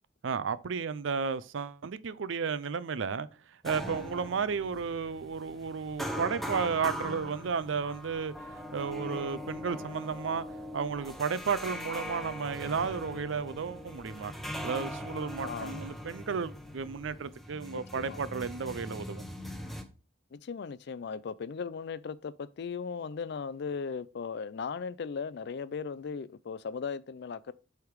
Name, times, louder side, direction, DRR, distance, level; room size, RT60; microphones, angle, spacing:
voice 1, 0.2-10.5 10.7-14.3 14.6-19.2, right 5 dB, 75° right, 0.5 m, -33 dB
sound 1, 3.6-19.8, equal, ahead, 0.7 m, -41 dB
voice 2, 15.4-15.9 17.7-18.2 20.3-27.5, left 5 dB, 60° left, 0.4 m, -37 dB
8.1 x 3.5 x 4.6 m
head